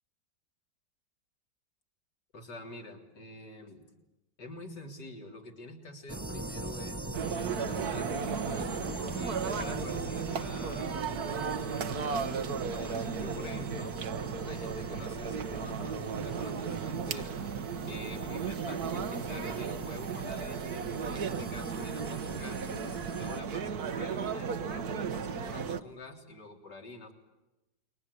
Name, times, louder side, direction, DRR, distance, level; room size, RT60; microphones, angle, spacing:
voice 1, 2.3-3.8 4.4-8.7 9.1-13.9 14.5-22.7 23.1-27.1, left 2 dB, 70° left, 3 dB, 4.2 m, -47 dB
sound 1, 6.1-23.4, right 2 dB, 10° right, 0.9 m, -43 dB
sound 2, 7.1-25.8, right 6 dB, 60° right, 1.6 m, -35 dB
29.5 x 23.0 x 8.3 m, 1.0 s
omnidirectional pair, 1.9 m